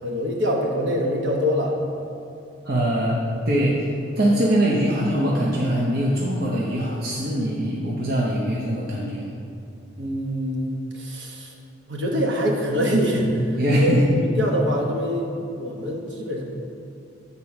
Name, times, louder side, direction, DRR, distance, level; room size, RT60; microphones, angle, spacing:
voice 1, 0.0-1.8 10.0-11.5 11.9-15.3 15.5-16.4, equal, 70° right, -1 dB, 1.2 m, -24 dB
voice 2, 2.6-3.8 4.2-9.3 13.6-14.1, equal, 50° right, -4 dB, 0.9 m, -22 dB
8.3 x 4.2 x 5.9 m, 2.5 s
head